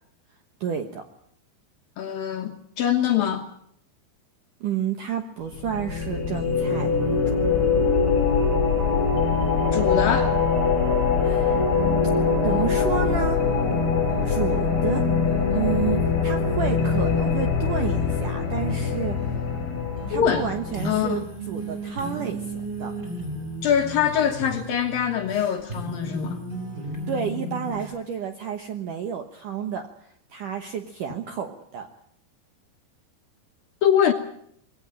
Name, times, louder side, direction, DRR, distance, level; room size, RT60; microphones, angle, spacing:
voice 1, 0.6-1.0 4.6-7.4 11.2-11.6 12.4-13.4 14.2-15.0 15.5-19.2 20.1-22.9 27.1-31.9, right 8 dB, 70° right, 6 dB, 2.0 m, -30 dB
voice 2, 2.0-3.5 9.7-10.4 20.1-20.5 20.8-21.3 23.6-26.4 33.8-34.1, left 9 dB, 65° left, 5 dB, 2.5 m, -23 dB
sound 1, 5.5-21.0, left 5 dB, 30° left, 4.0 m, -23 dB
sound 2, 11.7-28.0, right 1 dB, 10° right, 3.8 m, -36 dB
22.0 x 17.0 x 9.0 m, 0.67 s
omnidirectional pair, 5.4 m